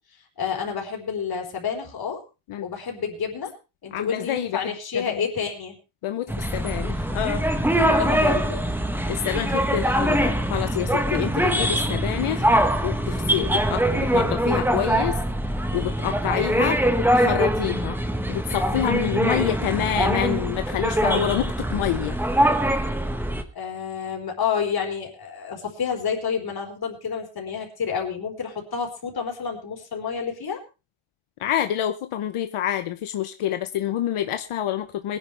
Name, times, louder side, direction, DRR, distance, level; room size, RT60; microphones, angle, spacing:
voice 1, 0.4-2.2 2.6-3.5 3.8-5.8 7.9-8.6 23.5-30.6, left 6 dB, 50° left, 1 dB, 4.3 m, -29 dB
voice 2, 3.9-4.6 5.1-5.2 6.0-7.4 9.1-12.5 12.8-15.2 15.7-18.0 18.3-22.2 31.4-35.2, left 11 dB, 90° left, 8 dB, 1.0 m, -27 dB
sound 1, 6.3-23.4, right 1 dB, 5° right, 1.2 m, -23 dB
22.0 x 10.5 x 3.4 m, 0.30 s
wide cardioid pair, 175°, 49 cm